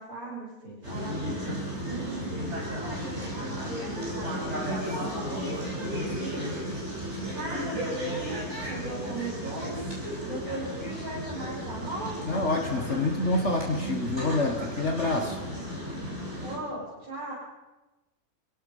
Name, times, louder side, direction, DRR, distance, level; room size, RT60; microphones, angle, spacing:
voice 1, 0.0-2.6 3.1-6.5 7.3-9.9 10.2-12.2 16.4-17.3, right 2 dB, 65° right, -9 dB, 8.0 m, -38 dB
sound 1, 0.8-16.6, equal, 45° right, 6.7 m, -34 dB
voice 2, 12.3-15.5, left 2 dB, 50° left, 4 dB, 1.9 m, -27 dB
28.5 x 17.5 x 5.6 m, 1.1 s
omnidirectional pair, 1.6 m